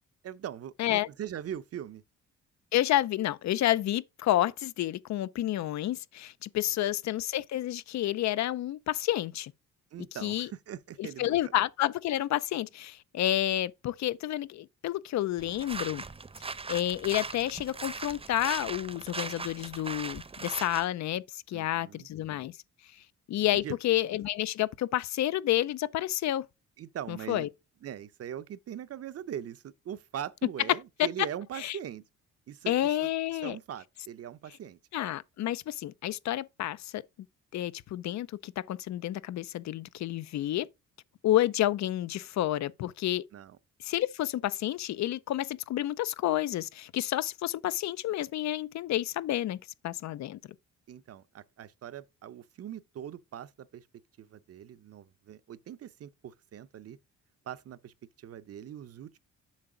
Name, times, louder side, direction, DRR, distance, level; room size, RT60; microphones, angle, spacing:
voice 1, 0.2-2.0 9.9-11.5 21.5-22.1 23.6-23.8 26.8-27.5 27.8-32.0 32.5-34.8 43.3-43.6 50.9-53.9 54.2-57.0 57.5-59.2, right 10 dB, 55° right, 0.7 m, -41 dB
voice 2, 2.7-9.5 10.2-10.5 11.0-16.0 16.7-22.5 23.3-26.4 27.1-27.5 31.0-31.1 31.6-31.8 32.7-33.6 34.9-37.0 37.5-40.7 41.2-43.2 43.8-49.6 49.8-50.4, left 13 dB, 65° left, 0.6 m, -30 dB
sound 1, 15.4-20.9, right 4 dB, 20° right, 0.7 m, -39 dB
7.4 x 5.7 x 3.8 m
cardioid pair, 90°, 30 cm